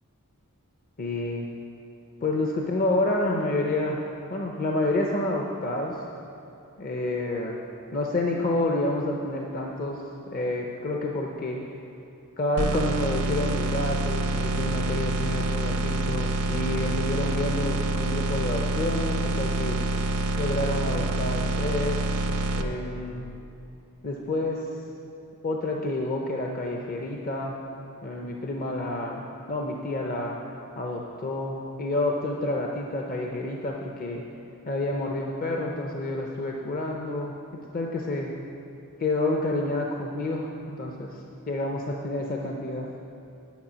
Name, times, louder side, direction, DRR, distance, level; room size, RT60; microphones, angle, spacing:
voice 1, 1.0-1.5 2.2-4.0 4.3-6.0 6.8-7.6 7.9-10.0 10.3-11.6 12.4-19.8 20.4-22.2 22.6-23.3 24.0-24.7 25.4-27.6 28.0-29.2 29.5-30.4 30.8-34.2 34.7-37.3 37.7-38.3 39.0-41.2 41.5-42.9, left 2 dB, 40° left, 0 dB, 0.6 m, -29 dB
sound 1, 12.6-22.6, right 2 dB, 80° right, 0.6 m, -27 dB
10.5 x 6.5 x 6.2 m, 2.8 s
head